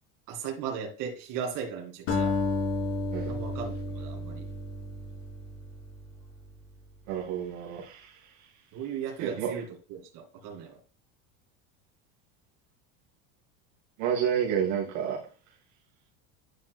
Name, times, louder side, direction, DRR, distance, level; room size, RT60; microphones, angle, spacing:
voice 1, 0.3-2.3 3.3-4.4 8.7-10.8, right 7 dB, 55° right, 2.5 m, -37 dB
Acoustic guitar, 2.1-6.5, left 2 dB, 85° left, 3.0 m, -32 dB
voice 2, 7.1-8.2 9.2-9.5 14.0-15.2, right 8 dB, 75° right, 2.1 m, -30 dB
10.5 x 4.2 x 2.3 m
cardioid pair, 160°, 39 cm